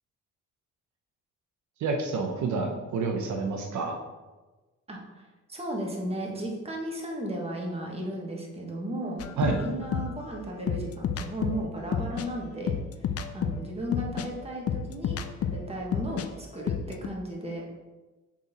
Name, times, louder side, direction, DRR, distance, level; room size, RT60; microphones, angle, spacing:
voice 1, 1.8-4.0 9.4-9.6, right 4 dB, 70° right, 3 dB, 0.8 m, -28 dB
voice 2, 4.9-5.2 5.5-12.7 13.3-17.6, right 1 dB, 20° right, -1 dB, 1.6 m, -35 dB
sound 1, 9.2-16.3 16.6-17.1, left 7 dB, 50° left, 0.5 m, -31 dB
6.2 x 4.2 x 4.3 m, 1.2 s
cardioid pair, 90°, 30 cm